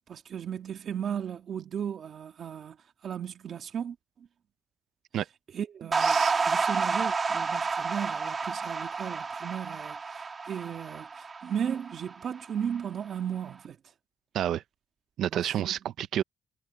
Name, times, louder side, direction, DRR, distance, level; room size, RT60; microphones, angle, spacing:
voice 1, 0.1-2.8 3.0-4.3 5.5-6.2 6.4-13.8 15.4-15.7, right 8 dB, 60° right, 1.8 m, -35 dB
sound 1, 5.9-12.4, right 4 dB, 35° right, 1.7 m, -30 dB
voice 2, 6.0-6.3 14.3-14.6 15.2-16.2, right 11 dB, 80° right, 0.7 m, -29 dB
cardioid pair, 100°, 0 cm